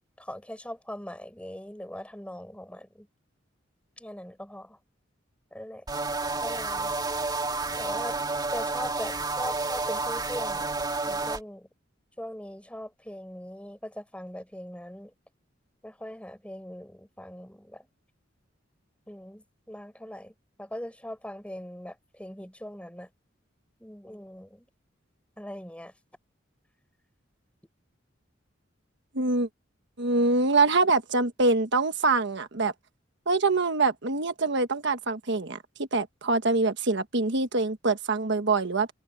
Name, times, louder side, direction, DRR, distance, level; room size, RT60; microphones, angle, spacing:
voice 1, 0.2-3.1 4.0-4.8 5.5-5.8 6.4-6.9 7.8-8.2 8.5-10.7 11.1-11.7 12.2-15.1 15.8-17.9 19.1-20.3 20.6-23.1 23.8-24.7 25.4-25.9, left 1 dB, 5° left, 5.5 m, -40 dB
sound 1, 5.9-11.4, right 3 dB, 20° right, 2.7 m, -30 dB
voice 2, 29.1-29.5 30.0-32.7 33.3-35.6 35.9-38.9, right 3 dB, 65° right, 1.3 m, -24 dB
head